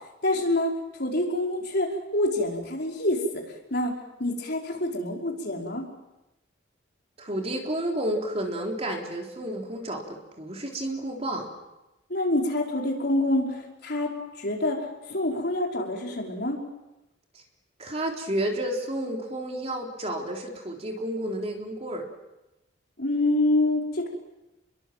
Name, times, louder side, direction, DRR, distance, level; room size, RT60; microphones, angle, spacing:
voice 1, 0.2-3.2 3.5-3.9 4.2-5.8 12.1-14.1 14.4-16.6 23.0-24.1, left 1 dB, 55° left, 0 dB, 5.2 m, -26 dB
voice 2, 7.2-11.5 17.8-22.1, right 1 dB, 30° right, 1 dB, 3.8 m, -31 dB
30.0 x 22.5 x 7.7 m, 0.96 s
head